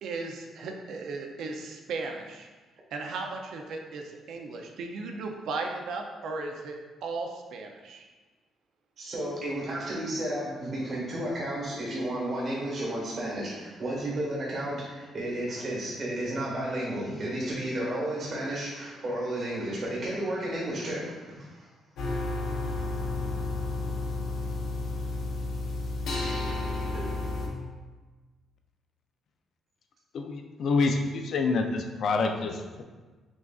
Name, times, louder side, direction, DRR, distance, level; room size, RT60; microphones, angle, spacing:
voice 1, 0.0-2.5 2.9-6.8 7.0-8.0, right 3 dB, 65° right, 3 dB, 0.5 m, -36 dB
voice 2, 9.0-21.7, right 1 dB, 40° right, -5 dB, 1.2 m, -32 dB
sound 1, 22.0-27.5, left 2 dB, 80° left, 0.8 m, -31 dB
voice 3, 30.1-32.8, left 3 dB, 50° left, 5 dB, 0.4 m, -27 dB
6.0 x 2.5 x 2.3 m, 1.3 s
cardioid pair, 170°, 0 cm